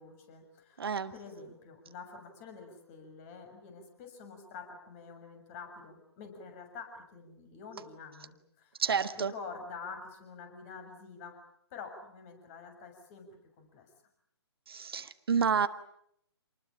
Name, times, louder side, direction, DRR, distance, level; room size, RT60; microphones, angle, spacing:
voice 1, 0.0-0.8 1.1-8.8 9.1-11.4 11.7-13.9, left 5 dB, 30° left, 5 dB, 6.9 m, -47 dB
voice 2, 0.8-1.1 8.8-9.3 14.7-15.7, right 6 dB, 60° right, 11 dB, 1.4 m, -29 dB
27.5 x 20.5 x 8.9 m, 0.72 s
figure-of-eight pair, 135°, 14 cm